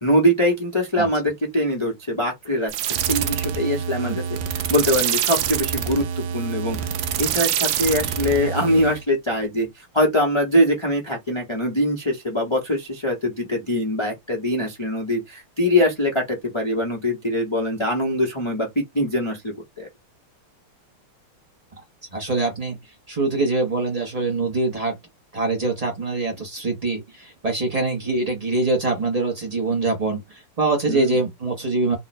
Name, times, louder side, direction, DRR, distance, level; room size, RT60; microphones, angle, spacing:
voice 1, 0.0-2.7 3.0-6.0 6.3-9.7 9.9-19.9 30.9-31.2, equal, 35° left, 0.4 m, -23 dB
sound 1, 2.7-9.0, right 9 dB, 75° right, 1.1 m, -26 dB
voice 2, 22.1-22.8 23.1-24.9 25.3-30.2 30.6-31.9, right 3 dB, 45° right, 0.4 m, -24 dB
3.6 x 2.2 x 4.1 m
omnidirectional pair, 2.4 m